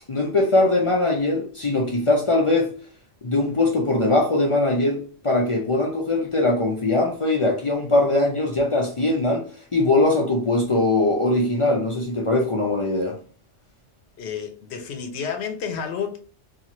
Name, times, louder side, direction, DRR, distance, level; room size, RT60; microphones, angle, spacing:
voice 1, 0.1-2.7 3.2-9.4 9.7-13.1, left 2 dB, 40° left, 0.5 m, -21 dB
voice 2, 14.2-16.2, left 7 dB, 75° left, 0.9 m, -30 dB
3.0 x 2.4 x 2.5 m
omnidirectional pair, 1.1 m